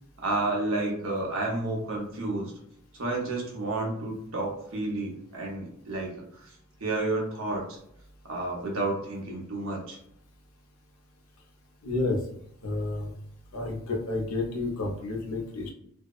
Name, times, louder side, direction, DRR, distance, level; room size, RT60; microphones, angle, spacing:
voice 1, 0.2-2.5 2.9-6.5 6.8-7.8 8.2-10.0, right 2 dB, 65° right, -2 dB, 0.8 m, -31 dB
voice 2, 11.8-12.2 12.6-13.1 13.5-15.7, left 2 dB, 80° left, 1 dB, 0.7 m, -30 dB
2.6 x 2.0 x 2.3 m, 0.70 s
head